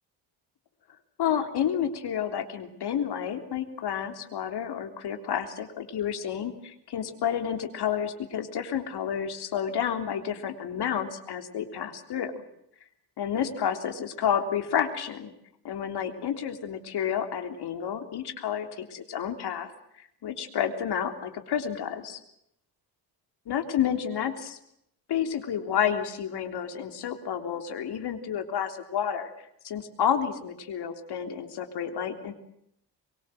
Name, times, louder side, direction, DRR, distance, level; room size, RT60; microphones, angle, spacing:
voice 1, 1.2-12.4 13.2-15.3 15.6-19.7 20.0-22.2 23.5-24.6 25.1-29.3 29.6-32.3, left 8 dB, 65° left, 6 dB, 3.6 m, -30 dB
24.0 x 23.5 x 7.8 m, 0.76 s
cardioid pair, 130°, 43 cm